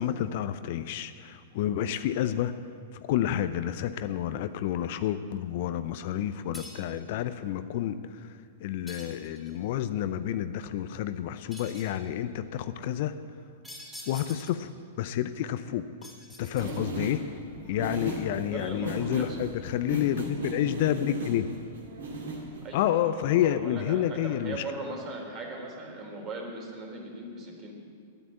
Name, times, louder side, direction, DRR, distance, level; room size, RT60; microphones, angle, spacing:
voice 1, 0.0-2.5 3.0-8.0 8.6-13.1 14.1-14.7 15.0-15.9 16.4-17.2 17.6-21.5 22.7-24.6, left 11 dB, 55° left, 12 dB, 0.5 m, -29 dB
sound 1, 6.5-7.0 8.9-9.6 11.5-12.0 13.6-14.7 16.0-17.1, left 1 dB, 5° right, 3.7 m, -46 dB
sound 2, 16.6-22.9, right 2 dB, 70° right, 2.1 m, -37 dB
voice 2, 17.6-18.2 18.5-19.4 22.6-27.7, right 2 dB, 30° right, 0 dB, 3.2 m, -39 dB
10.0 x 9.2 x 9.2 m, 2.2 s
figure-of-eight pair, 105°, 0 cm